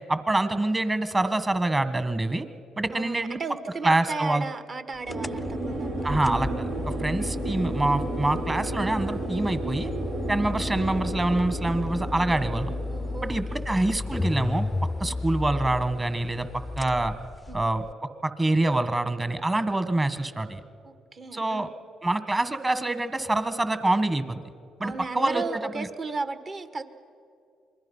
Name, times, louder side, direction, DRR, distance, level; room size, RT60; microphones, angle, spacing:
voice 1, 0.1-2.4 2.8-3.4 3.8-4.4 6.0-9.9 10.3-12.7 13.2-14.7 15.0-16.5 16.8-17.1 17.5-17.8 18.2-20.6 21.3-21.7 22.0-24.4 24.8-25.9, right 2 dB, 25° right, 11 dB, 1.7 m, -26 dB
voice 2, 2.9-6.2 7.0-7.1 12.9-13.6 15.0-15.2 17.5-17.6 20.8-21.7 24.8-26.8, right 4 dB, 45° right, 11 dB, 1.5 m, -35 dB
sound 1, 5.1-17.9, left 2 dB, 20° left, 0.4 m, -34 dB
sound 2, 5.1-13.4, right 2 dB, 80° right, 2.7 m, -33 dB
27.0 x 21.5 x 5.7 m, 2.5 s
supercardioid pair, 60°, 0 cm